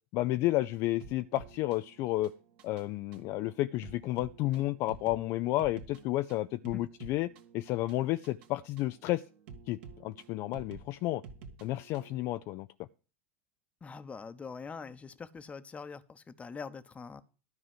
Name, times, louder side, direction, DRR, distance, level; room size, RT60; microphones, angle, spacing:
voice 1, 0.1-2.3 2.6-9.2 9.7-11.2 11.6-12.7, left 16 dB, 45° left, 11 dB, 0.4 m, -31 dB
sound 1, 1.0-12.2, right 5 dB, 55° right, 1.8 m, -51 dB
voice 2, 13.8-17.2, left 5 dB, 20° left, 12 dB, 0.9 m, -43 dB
12.5 x 4.9 x 7.7 m, 0.35 s
figure-of-eight pair, 80°, 7 cm